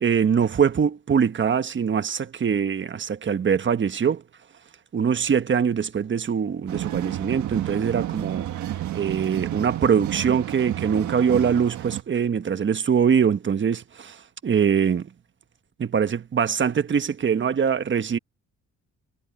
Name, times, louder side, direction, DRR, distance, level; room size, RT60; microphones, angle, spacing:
voice 1, 0.0-4.2 4.9-8.5 8.9-14.2 14.4-15.1 15.8-18.2, right 7 dB, 40° right, 1.3 m, -23 dB
sound 1, 6.7-12.0, right 13 dB, 75° right, 1.5 m, -31 dB
cardioid pair, 90°, 30 cm